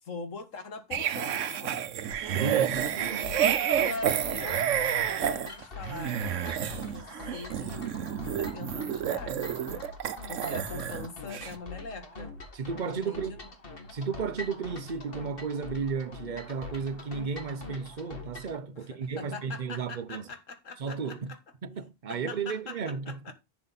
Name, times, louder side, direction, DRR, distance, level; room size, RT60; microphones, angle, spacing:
voice 1, 0.0-1.8 3.7-4.7 5.2-6.3 6.8-8.0 8.3-9.5 10.3-12.3 12.8-13.5 18.8-21.4 22.1-23.3, left 4 dB, 85° left, 1.9 m, -42 dB
sound 1, 0.9-11.1 11.3-11.5, right 9 dB, 80° right, 1.1 m, -30 dB
voice 2, 2.3-3.3 12.5-13.4 13.9-20.2 20.8-21.3 21.6-23.3, right 5 dB, 45° right, 0.8 m, -34 dB
sound 2, 2.7-18.6, left 3 dB, 45° left, 2.0 m, -44 dB
11.0 x 7.0 x 4.1 m
omnidirectional pair, 1.3 m